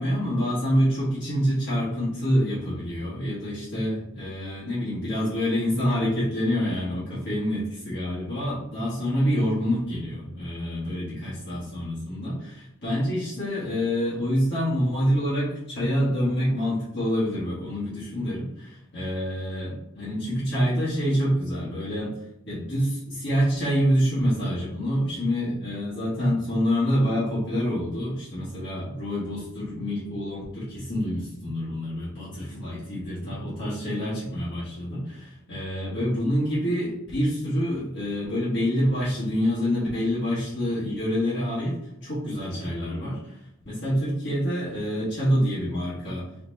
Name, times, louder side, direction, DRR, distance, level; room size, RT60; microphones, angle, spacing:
voice 1, 0.0-22.1 22.5-41.7 42.0-43.4 43.6-46.3, equal, 55° left, -10 dB, 1.7 m, -27 dB
4.3 x 3.0 x 4.1 m, 0.83 s
head